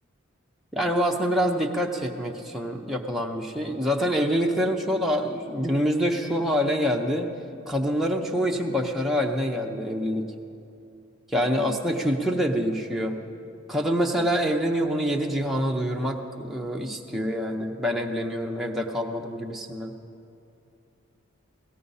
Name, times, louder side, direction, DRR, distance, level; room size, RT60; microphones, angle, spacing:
voice 1, 0.7-7.3 7.7-10.3 11.3-13.2 13.7-19.9, equal, ahead, 0 dB, 0.6 m, -26 dB
17.5 x 14.5 x 5.5 m, 2.6 s
head